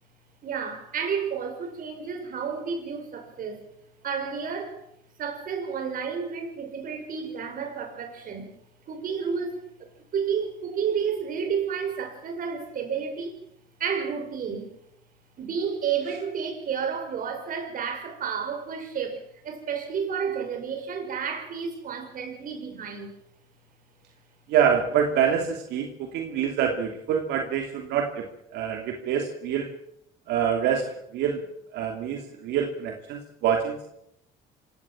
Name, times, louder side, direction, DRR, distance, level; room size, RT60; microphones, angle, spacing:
voice 1, 0.4-3.6 4.0-4.8 5.2-8.5 8.9-13.4 13.8-14.7 15.4-19.2 19.4-23.1, right 6 dB, 55° right, 6.2 m, -31 dB
voice 2, 24.5-28.3 28.5-29.7 30.3-31.4 31.7-33.9, right 8 dB, 85° right, 2.8 m, -26 dB
26.5 x 17.0 x 7.3 m
cardioid pair, 110°, 17 cm